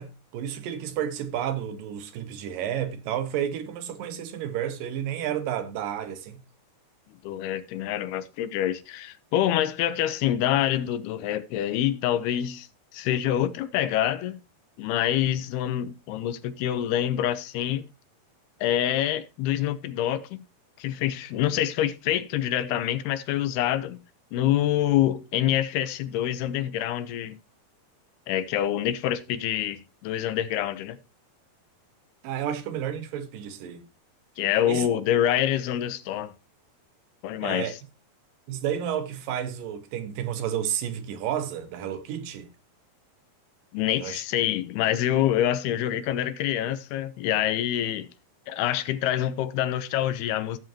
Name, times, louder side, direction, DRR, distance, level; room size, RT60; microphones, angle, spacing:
voice 1, 0.0-6.4 32.2-33.8 34.7-34.9 37.4-37.7 38.5-42.5 44.0-44.2, right 10 dB, 70° right, 2.6 m, -31 dB
voice 2, 7.2-12.7 12.9-14.4 14.8-17.8 18.6-20.4 20.8-24.0 24.3-27.4 28.3-31.0 34.4-36.3 37.2-37.8 43.7-48.1 48.5-50.6, left 11 dB, 85° left, 2.9 m, -26 dB
16.5 x 7.3 x 2.9 m
omnidirectional pair, 4.5 m